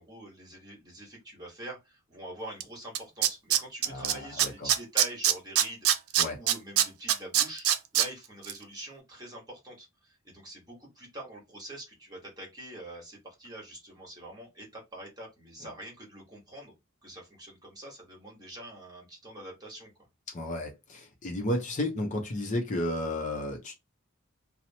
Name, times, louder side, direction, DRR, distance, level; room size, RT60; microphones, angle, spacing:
voice 1, 0.0-7.6 7.9-16.7 17.0-19.9, right 1 dB, 20° right, 1.2 m, -45 dB
Tools, 2.6-2.7 2.9-4.1 4.4-8.1 8.4-8.5, right 11 dB, 85° right, 0.4 m, -23 dB
voice 2, 3.9-4.7 6.2-6.4 20.3-23.8, left 1 dB, 35° left, 0.5 m, -33 dB
2.8 x 2.0 x 2.7 m
head